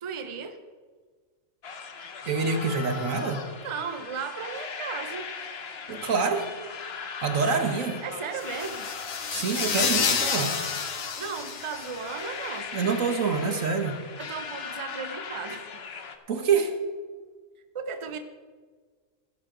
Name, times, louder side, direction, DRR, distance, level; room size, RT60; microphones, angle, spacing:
voice 1, 0.0-0.6 3.6-5.3 8.0-8.9 11.2-12.7 14.2-15.7 17.7-18.2, right 5 dB, 30° right, 8 dB, 0.7 m, -35 dB
sound 1, 1.6-16.2, left 5 dB, 55° left, 1.1 m, -39 dB
voice 2, 2.2-3.4 5.9-6.4 7.2-8.0 9.3-10.5 12.7-14.0 16.3-16.7, right 5 dB, 80° right, 6 dB, 1.7 m, -26 dB
sound 2, 8.4-12.3, left 6 dB, 90° left, 1.5 m, -29 dB
16.0 x 11.5 x 3.9 m, 1.5 s
omnidirectional pair, 1.4 m